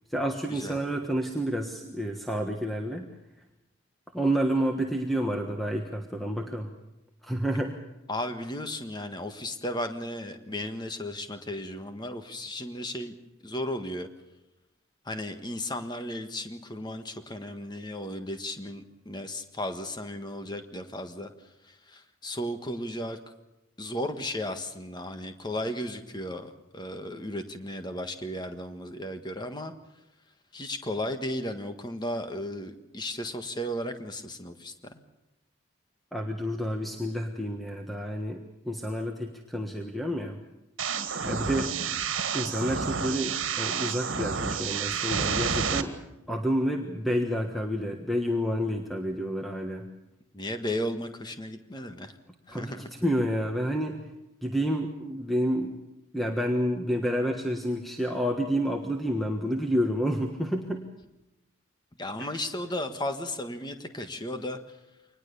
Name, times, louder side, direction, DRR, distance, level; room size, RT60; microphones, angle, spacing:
voice 1, 0.1-3.1 4.1-6.7 7.2-7.8 36.1-40.4 41.3-41.7 42.3-46.0 46.3-49.9 52.5-52.7 53.0-54.0 54.4-55.8 56.1-60.8 62.2-62.3, equal, ahead, 2 dB, 1.4 m, -29 dB
voice 2, 8.1-13.1 13.4-14.1 15.0-23.2 23.8-29.7 30.5-35.0 41.5-42.0 50.3-52.2 52.5-52.9 62.0-64.8, left 1 dB, 20° left, 7 dB, 1.5 m, -35 dB
sound 1, 40.8-45.8, right 6 dB, 65° right, 1.9 m, -30 dB
25.0 x 20.0 x 6.9 m, 0.94 s
head